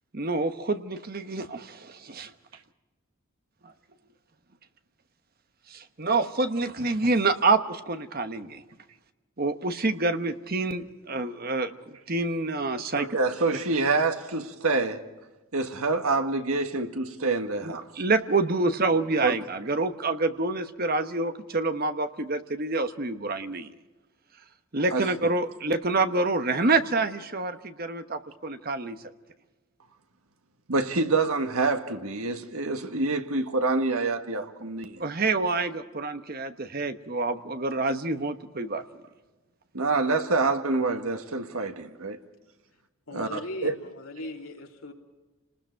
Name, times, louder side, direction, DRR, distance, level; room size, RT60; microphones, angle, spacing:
voice 1, 0.1-2.3 5.7-8.6 9.4-11.8 12.1-13.1 17.6-23.7 24.7-29.0 35.0-38.8, right 3 dB, 45° right, 1.1 m, -27 dB
voice 2, 13.0-15.0 15.5-17.9 19.2-19.4 24.9-25.1 30.7-35.0 39.7-42.2 43.1-43.7, right 3 dB, 80° right, 1.7 m, -27 dB
voice 3, 43.1-44.9, left 1 dB, 80° left, 3.0 m, -38 dB
30.0 x 20.0 x 4.7 m
head